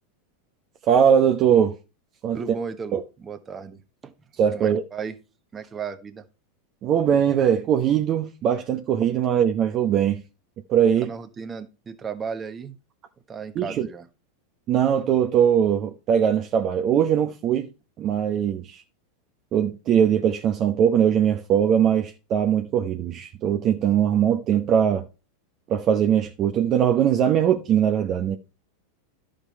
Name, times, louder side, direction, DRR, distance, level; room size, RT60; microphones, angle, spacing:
voice 1, 0.9-1.7 2.2-2.4 2.9-3.0 4.4-4.8 6.8-10.2 10.7-11.1 13.6-13.9 14.7-17.7 18.0-18.8 19.5-25.0 25.7-28.4, right 9 dB, 40° right, 0.9 m, -21 dB
voice 2, 2.3-3.8 4.0-4.1 4.5-5.2 5.5-6.2 11.0-12.8 13.3-14.1, right 6 dB, 25° right, 1.2 m, -34 dB
11.5 x 5.2 x 4.2 m
hypercardioid pair, 95°, 0 cm